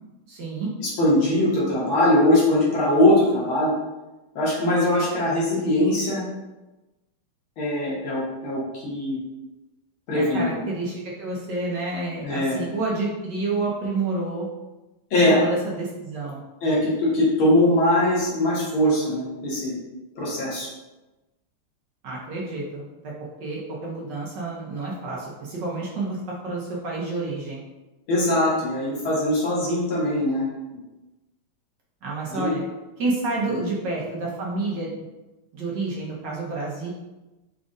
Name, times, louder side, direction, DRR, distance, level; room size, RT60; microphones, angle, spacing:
voice 1, 0.3-0.7 10.1-14.5 15.3-16.4 22.0-27.6 32.0-32.6 33.0-35.0 35.5-36.9, right 3 dB, 60° right, -4 dB, 1.3 m, -29 dB
voice 2, 0.8-3.7 4.4-6.2 7.6-9.2 10.1-10.5 12.2-12.6 15.1-15.4 16.6-19.8 20.2-20.7 28.1-30.5 32.3-32.5 33.5-33.6, left 1 dB, 70° left, -6 dB, 2.2 m, -21 dB
5.1 x 2.4 x 3.8 m, 1.1 s
omnidirectional pair, 2.4 m